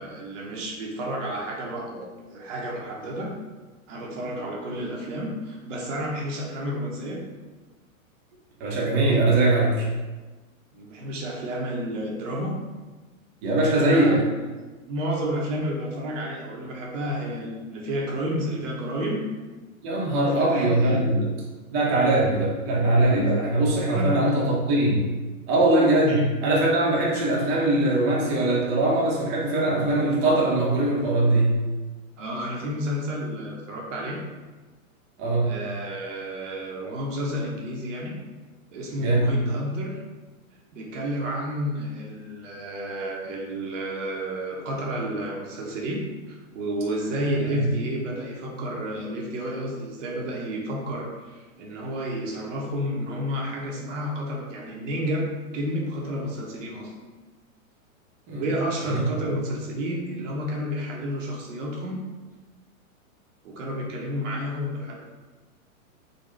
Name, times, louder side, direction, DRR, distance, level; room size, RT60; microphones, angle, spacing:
voice 1, 0.0-3.4 3.9-7.2 10.7-12.6 13.7-14.3 14.9-19.3 20.2-21.0 23.9-24.3 26.1-26.2 32.2-34.2 35.4-38.2 38.7-40.0 40.7-55.3 55.5-56.9 58.3-62.0 63.4-64.9, equal, 60° right, -2 dB, 0.9 m, -31 dB
voice 2, 8.6-9.9 13.4-14.2 19.8-21.3 21.7-25.1 25.5-31.6 35.2-35.5 39.0-39.3 47.5-47.7 58.3-58.5 58.8-59.0, right 2 dB, 30° right, -4 dB, 0.8 m, -21 dB
3.9 x 2.2 x 3.2 m, 1.3 s
hypercardioid pair, 135°, 42 cm